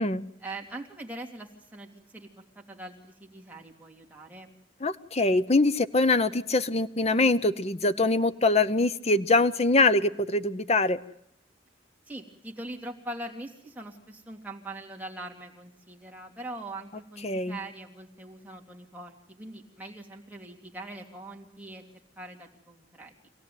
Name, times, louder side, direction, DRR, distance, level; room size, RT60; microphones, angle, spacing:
voice 1, 0.4-4.5 12.1-21.9 22.2-23.3, right 2 dB, 10° right, 0 dB, 2.9 m, -42 dB
voice 2, 4.8-11.0 17.2-17.6, left 2 dB, 35° left, 12 dB, 0.9 m, -23 dB
25.5 x 17.0 x 9.5 m, 0.72 s
head